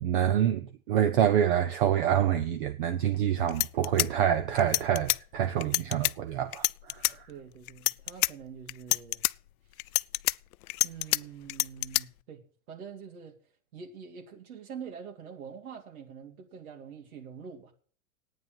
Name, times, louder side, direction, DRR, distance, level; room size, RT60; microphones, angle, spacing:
voice 1, 0.0-7.0, right 10 dB, 40° right, 0.8 m, -26 dB
sound 1, 3.1-3.2 3.5-5.2 5.6-6.1 6.5-7.1 7.7-8.3 8.7-9.3 9.8-11.2 11.5-12.0, left 17 dB, 80° left, 0.5 m, -27 dB
voice 2, 7.3-9.2 10.8-13.4 13.7-17.7, right 7 dB, 80° right, 3.3 m, -45 dB
10.5 x 9.5 x 8.9 m
supercardioid pair, 175°, 42 cm